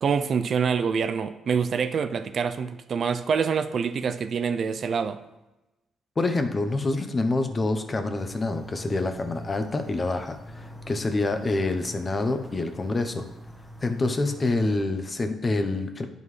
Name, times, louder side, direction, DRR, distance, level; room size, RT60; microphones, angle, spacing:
voice 1, 0.0-5.2, right 6 dB, 55° right, 0.4 m, -26 dB
voice 2, 6.2-13.3 13.8-16.1, left 2 dB, 30° left, 0.8 m, -27 dB
sound 1, 8.1-14.8, right 1 dB, 10° left, 1.3 m, -43 dB
9.2 x 5.3 x 3.2 m
cardioid pair, 90°, 0 cm